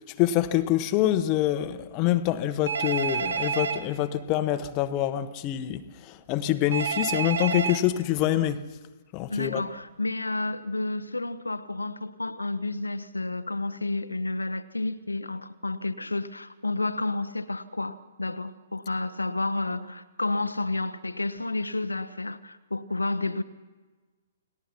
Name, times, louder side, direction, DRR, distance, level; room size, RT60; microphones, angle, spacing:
voice 1, 0.2-8.6 9.1-9.6, left 13 dB, 30° left, 1.2 m, -26 dB
Telephone, 2.7-3.8 6.7-7.8, right 6 dB, 60° right, 1.9 m, -28 dB
voice 2, 9.3-23.4, left 2 dB, 80° left, 1.1 m, -30 dB
29.5 x 19.5 x 5.9 m
figure-of-eight pair, 120°, 0 cm